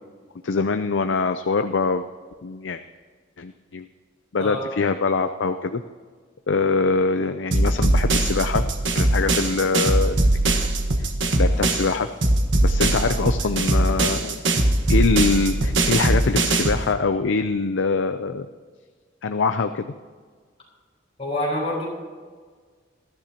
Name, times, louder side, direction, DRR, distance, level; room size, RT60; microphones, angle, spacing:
voice 1, 0.4-2.0 2.4-2.8 3.4-3.9 4.3-5.8 6.5-10.2 11.3-12.1 12.6-14.4 14.9-18.5 19.2-19.9, left 4 dB, 70° left, 9 dB, 0.5 m, -23 dB
sound 1, 7.5-11.9 12.2-16.8, right 2 dB, 75° right, 1.4 m, -21 dB
voice 2, 21.2-21.8, left 1 dB, 35° left, -4 dB, 5.1 m, -26 dB
21.0 x 13.5 x 2.9 m, 1.6 s
head